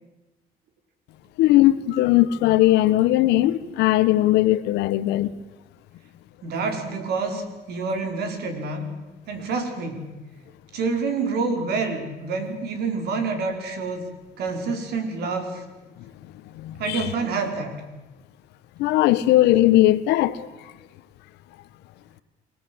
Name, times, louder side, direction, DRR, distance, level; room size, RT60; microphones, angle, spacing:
voice 1, 1.4-5.3 16.5-17.0 18.8-20.5, left 15 dB, 85° left, 1.3 m, -19 dB
voice 2, 6.4-8.9 9.3-10.0 10.7-14.1 14.4-15.6 16.8-17.8, right 4 dB, 70° right, 5.0 m, -27 dB
28.0 x 20.5 x 8.0 m
cardioid pair, 110°, 17 cm